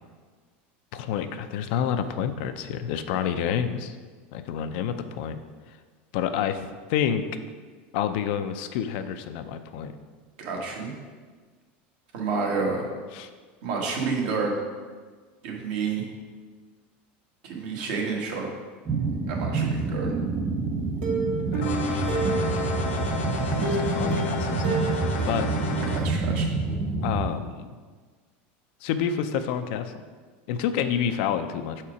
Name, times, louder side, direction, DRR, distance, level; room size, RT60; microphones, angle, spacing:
voice 1, 0.9-3.9 4.3-5.4 6.1-6.6 6.9-7.2 7.9-9.9 13.1-13.3 21.5-22.2 23.5-25.5 27.0-27.7 28.8-29.9 30.5-31.9, left 8 dB, 65° left, 9 dB, 0.5 m, -29 dB
voice 2, 10.4-10.9 12.1-12.9 13.6-14.6 15.4-16.1 17.4-18.5 19.3-20.1 25.9-26.5, right 4 dB, 65° right, -1 dB, 1.5 m, -29 dB
sound 1, 18.9-27.3, right 4 dB, 20° right, 0.4 m, -28 dB
Plucked string instrument, 21.0-23.0 23.6-26.4 26.7-26.8 27.2-27.3, right 2 dB, 85° right, 1.6 m, -31 dB
sound 2, 21.6-26.0, left 3 dB, 85° left, 1.0 m, -32 dB
6.1 x 4.3 x 4.9 m, 1.5 s
supercardioid pair, 140°, 6 cm